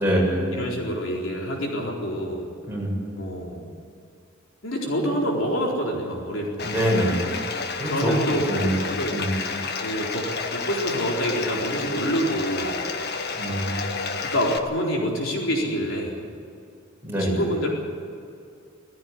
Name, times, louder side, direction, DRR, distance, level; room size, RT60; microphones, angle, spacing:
voice 1, 0.0-0.6 2.6-3.0 6.6-7.2 7.8-8.2 8.5-8.7 9.1-9.3 13.3-14.1 17.0-17.4, equal, 10° right, -4 dB, 7.4 m, -25 dB
voice 2, 0.5-2.5 3.2-3.7 4.6-6.7 7.9-9.1 9.8-12.8 14.3-16.3 17.2-17.7, equal, 70° left, -1 dB, 4.1 m, -27 dB
Bathtub (filling or washing), 6.6-14.6, left 4 dB, 50° left, 1.5 m, -30 dB
19.0 x 15.5 x 9.9 m, 2.4 s
head